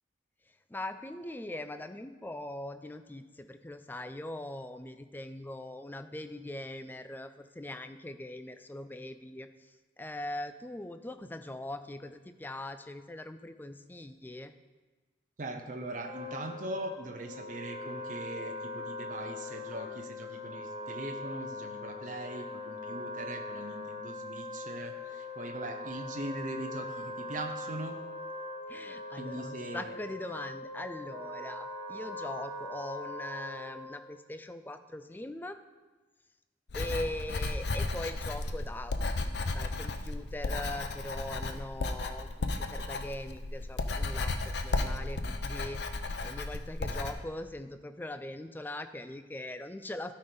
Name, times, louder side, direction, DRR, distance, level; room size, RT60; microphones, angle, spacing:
voice 1, 0.7-9.5 10.0-14.5 28.7-35.6 36.7-38.9 39.2-45.8 46.2-50.1, left 1 dB, 10° left, 10 dB, 0.3 m, -41 dB
voice 2, 15.4-28.0 29.2-29.9, right 1 dB, 45° right, 4 dB, 0.7 m, -40 dB
Wind instrument woodwind instrument, 15.9-34.1, left 2 dB, 25° right, 1.3 m, -41 dB
Writing, 36.7-47.1, left 2 dB, 65° left, 0.6 m, -34 dB
12.5 x 4.3 x 5.2 m, 1.3 s
head